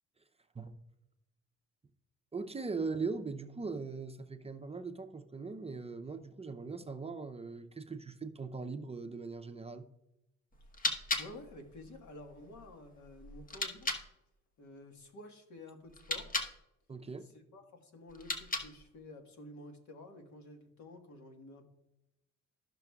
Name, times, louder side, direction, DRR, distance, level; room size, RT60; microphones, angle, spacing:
voice 1, 2.3-9.9 16.9-17.3, right 4 dB, 20° right, 7 dB, 0.6 m, -40 dB
sound 1, 10.5-14.1 15.9-16.6 18.1-18.9, left 2 dB, 30° left, 1.1 m, -38 dB
voice 2, 11.2-13.9 14.6-16.4 17.2-21.6, left 2 dB, 70° left, 4 dB, 1.5 m, -51 dB
13.5 x 6.0 x 2.3 m, 0.87 s
cardioid pair, 90°, 30 cm